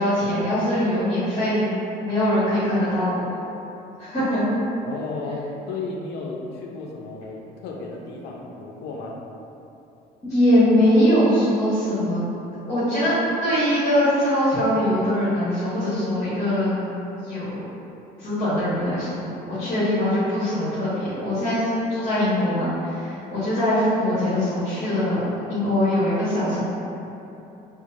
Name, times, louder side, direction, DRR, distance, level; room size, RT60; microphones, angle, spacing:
voice 1, 0.0-1.7 2.0-3.2 4.0-4.4 10.2-12.2 12.7-13.1 13.4-16.8 17.2-17.5 18.2-25.2 25.5-26.6, left 1 dB, 45° left, -13 dB, 1.3 m, -22 dB
voice 2, 4.8-9.2, left 3 dB, 80° left, -1 dB, 0.5 m, -33 dB
4.4 x 2.0 x 2.6 m, 2.9 s
cardioid pair, 110°, 17 cm